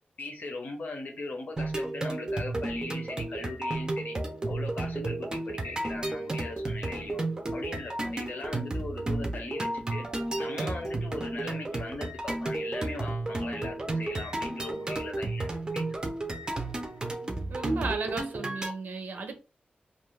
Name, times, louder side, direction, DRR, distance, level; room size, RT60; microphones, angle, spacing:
voice 1, 0.2-4.1 4.5-7.2 7.5-10.0 10.4-15.8, left 2 dB, 60° left, 0.8 m, -39 dB
sound 1, 1.6-18.7, right 2 dB, 25° right, 0.5 m, -33 dB
voice 2, 17.5-19.4, right 3 dB, 75° right, 0.5 m, -34 dB
2.5 x 2.4 x 3.1 m
wide cardioid pair, 140°, 3 cm